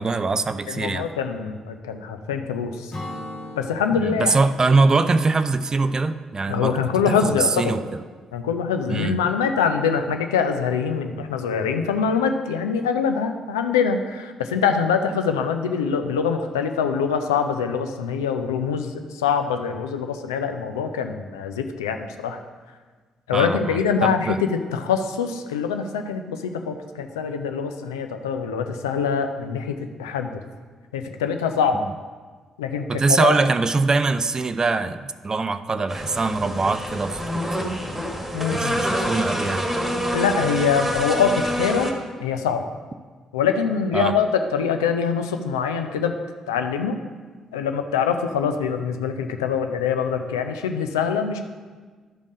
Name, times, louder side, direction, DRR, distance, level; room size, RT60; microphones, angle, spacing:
voice 1, 0.0-1.1 4.0-8.0 8.9-9.2 23.3-24.4 32.9-37.8 38.5-39.7 43.9-44.1, right 3 dB, 30° right, 11 dB, 0.5 m, -23 dB
voice 2, 0.7-2.9 3.5-4.4 6.5-7.7 8.3-22.4 23.3-24.4 24.7-30.4 30.9-31.8 32.6-33.4 38.3-38.8 40.1-41.9 42.2-42.6 43.3-46.2 46.5-47.0 47.5-51.4, left 6 dB, 75° left, 6 dB, 0.5 m, -24 dB
Acoustic guitar / Strum, 2.9-6.5, left 1 dB, 40° left, 1.5 m, -39 dB
sound 1, 35.9-41.9, equal, 10° right, 1.6 m, -26 dB
12.0 x 5.2 x 4.9 m, 1.4 s
figure-of-eight pair, 40°, 2 cm